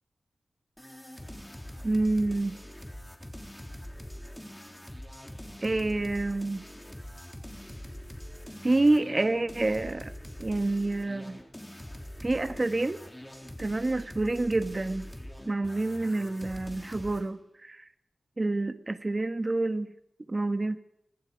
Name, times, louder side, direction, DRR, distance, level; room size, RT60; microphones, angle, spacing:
sound 1, 0.8-17.3, equal, 10° left, 3.5 m, -44 dB
voice 1, 1.8-2.6 5.6-6.6 8.6-10.1 10.4-11.4 12.2-13.0 13.6-15.1 15.4-17.8 18.4-19.9 20.3-20.8, right 2 dB, 30° right, 10 dB, 1.5 m, -28 dB
26.5 x 21.5 x 5.4 m, 0.78 s
wide cardioid pair, 95°, 0 cm